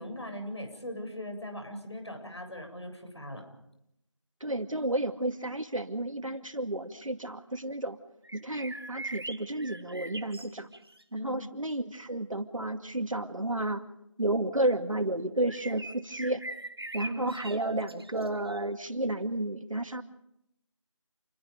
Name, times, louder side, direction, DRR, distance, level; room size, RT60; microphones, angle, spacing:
voice 1, 0.0-3.4 11.2-11.3 17.0-17.2, equal, 60° left, 5 dB, 7.7 m, -39 dB
voice 2, 4.4-8.0 8.3-10.7 11.1-13.8 14.2-16.4 16.9-20.0, right 1 dB, 85° right, 7 dB, 2.4 m, -31 dB
sound 1, 8.2-11.0 15.5-18.6, right 1 dB, 50° right, 1.4 m, -42 dB
29.0 x 23.0 x 5.2 m, 0.81 s
figure-of-eight pair, 180°, 16 cm